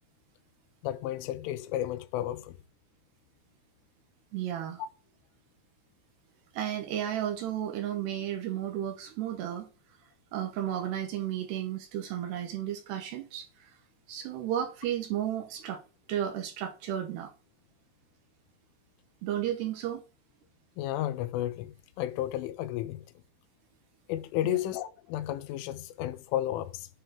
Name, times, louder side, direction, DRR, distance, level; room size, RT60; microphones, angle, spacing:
voice 1, 0.8-2.6 20.8-23.0 24.1-26.9, left 13 dB, 85° left, 3.2 m, -32 dB
voice 2, 4.3-4.8 6.5-9.7 10.3-13.7 14.1-15.8 16.1-17.3 19.2-20.0 24.4-24.6, right 11 dB, 70° right, 2.8 m, -33 dB
10.5 x 4.4 x 5.1 m
omnidirectional pair, 5.5 m